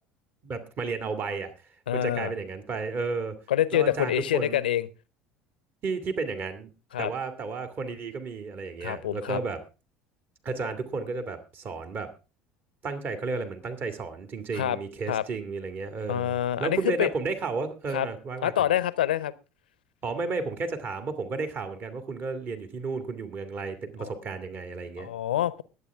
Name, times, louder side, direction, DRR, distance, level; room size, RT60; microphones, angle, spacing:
voice 1, 0.4-1.5 1.9-3.4 3.7-4.6 5.8-6.7 7.0-9.6 10.4-12.1 12.8-18.5 20.0-25.1, right 4 dB, 40° right, 9 dB, 2.1 m, -32 dB
voice 2, 1.9-2.3 3.5-4.9 6.9-7.1 8.8-9.4 14.5-14.8 15.1-15.2 16.1-17.1 17.9-18.1 18.4-19.3 24.0-24.1 25.0-25.6, left 11 dB, 80° left, 18 dB, 0.7 m, -26 dB
21.5 x 8.5 x 3.5 m, 0.31 s
figure-of-eight pair, 65°, 5 cm